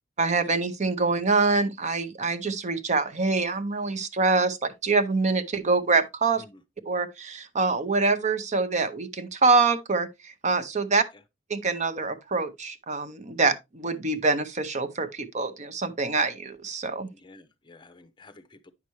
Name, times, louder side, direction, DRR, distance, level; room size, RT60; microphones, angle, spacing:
voice 1, 0.2-4.6 4.8-6.4 6.9-11.0 11.5-17.1, right 4 dB, 40° right, 0.7 m, -25 dB
voice 2, 17.1-18.7, left 2 dB, 25° left, 0.6 m, -51 dB
9.3 x 5.9 x 3.1 m
head